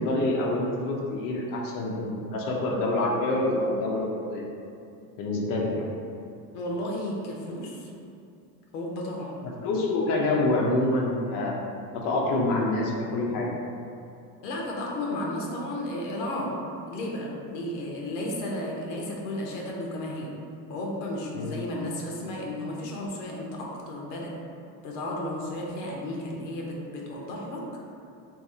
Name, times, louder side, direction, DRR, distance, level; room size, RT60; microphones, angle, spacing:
voice 1, 0.0-4.4 5.2-5.8 9.6-11.6 11.9-13.5 21.3-21.6, left 2 dB, 40° left, -2 dB, 0.6 m, -26 dB
voice 2, 6.5-7.9 8.7-9.4 14.4-16.6 16.9-20.3 20.7-24.3 24.8-27.6, left 1 dB, 85° left, -2 dB, 0.8 m, -33 dB
2.8 x 2.6 x 3.6 m, 2.6 s
supercardioid pair, 110°, 49 cm